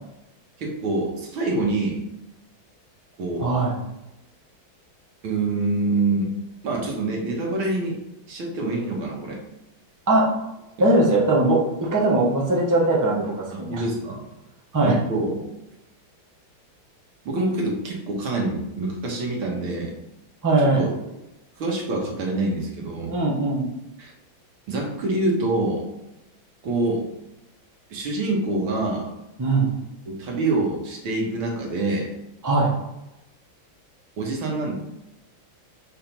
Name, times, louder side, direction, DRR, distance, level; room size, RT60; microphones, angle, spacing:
voice 1, 0.6-2.0 3.2-3.5 5.2-6.3 6.6-8.0 8.3-9.4 10.8-10.9 13.5-14.2 14.8-15.4 17.3-20.0 20.6-20.9 21.6-23.1 24.0-24.1 24.7-25.8 26.6-27.0 27.9-29.1 30.1-32.1 34.2-34.7, right 2 dB, 85° right, -1 dB, 2.3 m, -26 dB
voice 2, 3.4-3.8 10.1-10.3 10.8-13.8 14.7-14.9 20.4-20.9 23.1-23.7 29.4-29.7 32.4-32.7, right 2 dB, 10° right, -3 dB, 0.9 m, -20 dB
5.6 x 3.7 x 5.9 m, 0.91 s
omnidirectional pair, 2.2 m